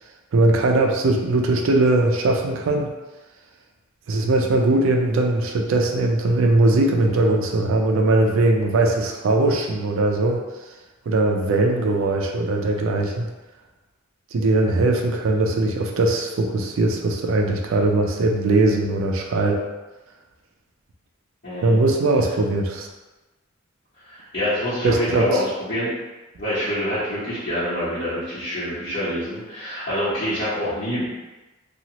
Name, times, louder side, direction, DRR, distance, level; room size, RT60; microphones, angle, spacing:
voice 1, 0.3-2.9 4.1-10.4 11.1-13.3 14.3-19.6 21.6-22.9 24.8-25.4, right 2 dB, 75° right, 2 dB, 0.4 m, -20 dB
voice 2, 21.4-21.8 24.1-25.9 26.4-31.1, equal, 55° left, -14 dB, 1.1 m, -26 dB
2.8 x 2.3 x 2.9 m, 1.1 s
head